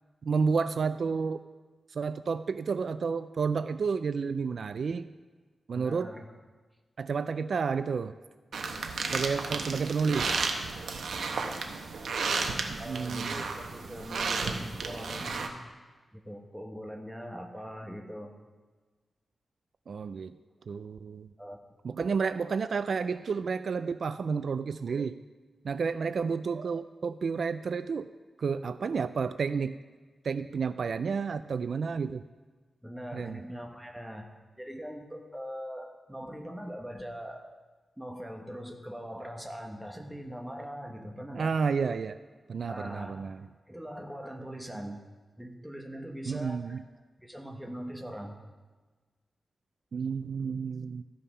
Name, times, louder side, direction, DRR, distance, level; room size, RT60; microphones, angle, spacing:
voice 1, 0.2-1.4 1.9-5.1 5.7-6.1 7.0-8.1 9.1-10.3 12.7-13.4 19.9-20.4 20.7-21.3 21.8-25.2 25.6-28.1 28.4-29.8 30.2-32.2 33.1-33.4 41.3-42.2 42.5-43.5 46.2-46.8 49.9-51.0, right 5 dB, 65° right, 12 dB, 0.3 m, -31 dB
voice 2, 5.7-6.3 12.8-15.6 16.1-18.3 21.4-21.6 22.0-22.1 32.8-37.5 38.0-41.5 42.6-43.3 43.7-45.0 45.4-46.8 47.2-48.4, equal, 5° right, 2 dB, 1.3 m, -41 dB
sound 1, 8.5-15.5, right 4 dB, 90° right, 0.9 m, -33 dB
14.5 x 5.5 x 5.5 m, 1.3 s
wide cardioid pair, 95°, 0 cm